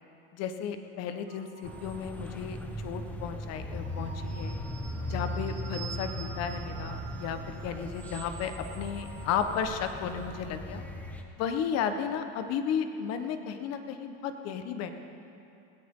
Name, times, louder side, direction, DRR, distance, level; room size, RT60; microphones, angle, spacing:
voice 1, 0.3-2.6 2.8-4.6 5.1-10.8 11.4-14.9, left 7 dB, 55° left, 7 dB, 1.4 m, -34 dB
sound 1, 1.3-2.7 3.6-10.3, right 6 dB, 40° right, 3.1 m, -48 dB
sound 2, 1.6-11.2, left 1 dB, 5° left, 1.4 m, -38 dB
19.0 x 17.0 x 3.9 m, 2.7 s
supercardioid pair, 115°, 30 cm